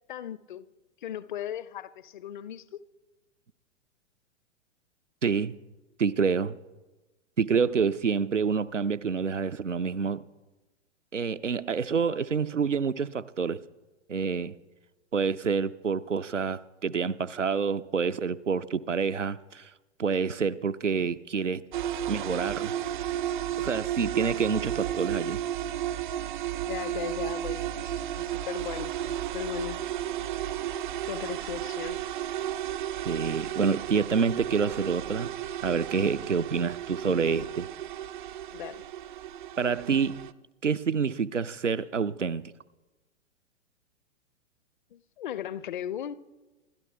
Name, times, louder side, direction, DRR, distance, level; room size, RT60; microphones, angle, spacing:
voice 1, 0.1-0.7 1.0-2.8 26.7-29.8 31.1-32.0 38.5-38.9 44.9-46.1, left 11 dB, 40° left, 0.6 m, -37 dB
voice 2, 5.2-5.6 6.0-6.5 7.4-10.3 11.1-13.6 14.1-14.5 15.1-19.7 20.0-21.6 22.1-22.8 23.6-25.4 33.1-35.3 35.6-37.7 39.6-40.2 40.6-42.4, right 5 dB, 85° right, 0.6 m, -27 dB
sound 1, 21.7-40.3, right 11 dB, 45° right, 0.5 m, -33 dB
27.0 x 12.5 x 3.4 m
figure-of-eight pair, 110°, 36 cm